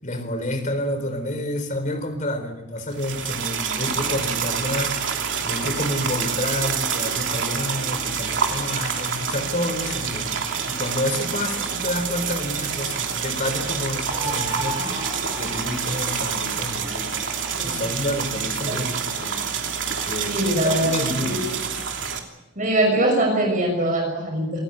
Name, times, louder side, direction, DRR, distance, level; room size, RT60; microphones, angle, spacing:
voice 1, 0.0-17.2 17.6-19.5 20.1-21.5, left 1 dB, 40° left, 7 dB, 4.3 m, -29 dB
sound 1, 2.9-22.2, right 6 dB, 75° right, 3.0 m, -27 dB
sound 2, 14.1-17.5, right 1 dB, 20° right, 4.7 m, -35 dB
voice 2, 20.3-20.9 21.2-21.5 22.5-24.6, right 1 dB, 40° right, 1 dB, 6.5 m, -22 dB
27.0 x 15.0 x 9.6 m, 0.99 s
head